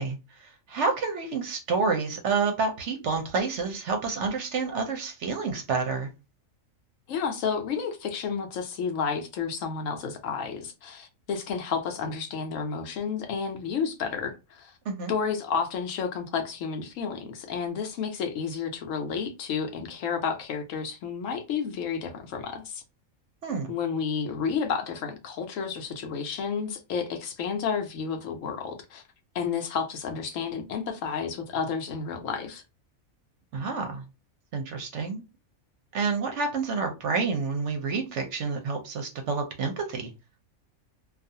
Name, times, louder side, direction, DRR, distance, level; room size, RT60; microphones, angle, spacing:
voice 1, 0.0-6.1 14.9-15.1 23.4-23.7 33.5-34.0 34.5-35.2 35.9-40.1, right 4 dB, 65° right, 0.8 m, -29 dB
voice 2, 7.1-14.7 15.1-22.8 23.7-29.0 29.3-32.6, left 6 dB, 70° left, 0.9 m, -31 dB
2.4 x 2.4 x 2.6 m
omnidirectional pair, 1.5 m